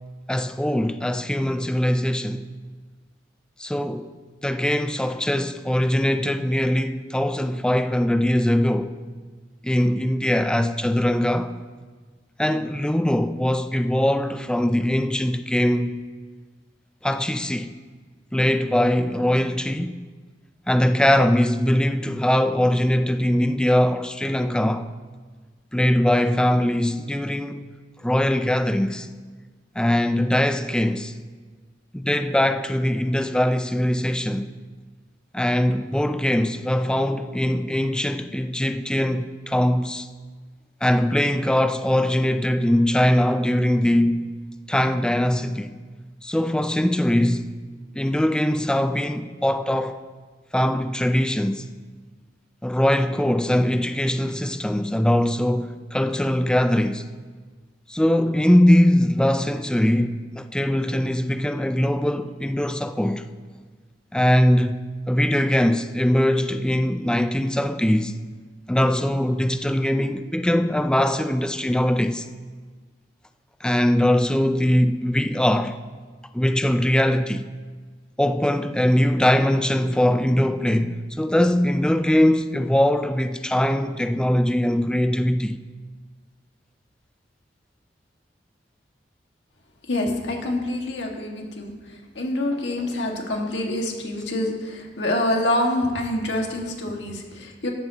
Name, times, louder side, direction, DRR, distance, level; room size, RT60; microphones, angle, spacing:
voice 1, 0.3-2.5 3.6-4.1 4.4-8.9 9.6-11.5 12.4-16.0 17.0-17.7 18.3-19.9 20.7-24.9 25.7-27.6 28.0-29.1 29.8-31.1 31.9-34.5 35.3-40.1 40.8-44.4 44.7-45.7 46.2-47.6 47.9-50.0 50.5-51.7 52.6-57.1 57.9-63.3 64.1-68.2 68.7-72.3 73.6-75.8 76.3-77.5 78.2-85.6, left 1 dB, 5° left, 0.4 m, -21 dB
voice 2, 89.9-91.7 92.1-97.7, left 1 dB, 70° left, 1.8 m, -26 dB
14.0 x 11.0 x 2.9 m
head